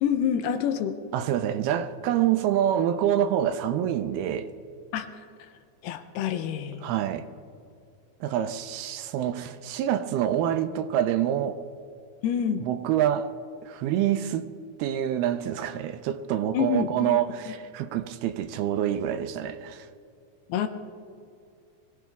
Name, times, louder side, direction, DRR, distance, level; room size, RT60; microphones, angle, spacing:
voice 1, 0.0-1.0 4.9-5.1 5.8-6.8 12.2-12.6 16.5-17.2 20.5-20.7, left 8 dB, 90° left, 2.9 m, -27 dB
voice 2, 1.1-4.5 6.8-7.3 8.2-11.6 12.6-13.3 13.6-14.5 14.8-19.9, right 10 dB, 85° right, 2.6 m, -26 dB
23.5 x 17.0 x 3.5 m
omnidirectional pair, 4.4 m